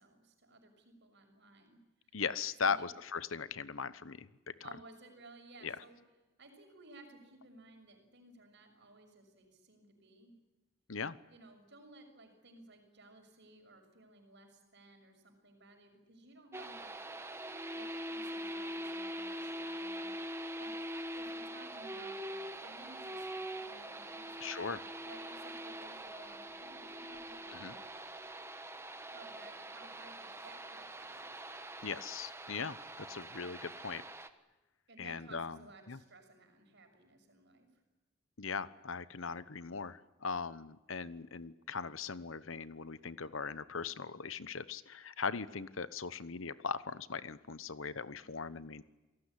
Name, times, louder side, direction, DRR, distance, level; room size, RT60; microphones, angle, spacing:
voice 1, 0.0-1.8 2.6-2.9 4.6-6.0 6.4-10.3 11.3-16.9 17.7-20.3 20.6-20.8 21.2-24.6 25.0-27.9 29.1-31.3 34.9-37.7, right 2 dB, 55° right, 6 dB, 6.3 m, -57 dB
voice 2, 2.1-4.7 5.6-5.8 10.9-11.2 24.4-24.8 27.5-27.7 31.8-34.0 35.0-35.6 35.9-36.0 38.4-48.8, left 5 dB, 70° left, 15 dB, 1.0 m, -39 dB
sound 1, 16.5-34.3, right 1 dB, 10° right, 1.3 m, -43 dB
27.5 x 18.5 x 10.0 m, 1.1 s
head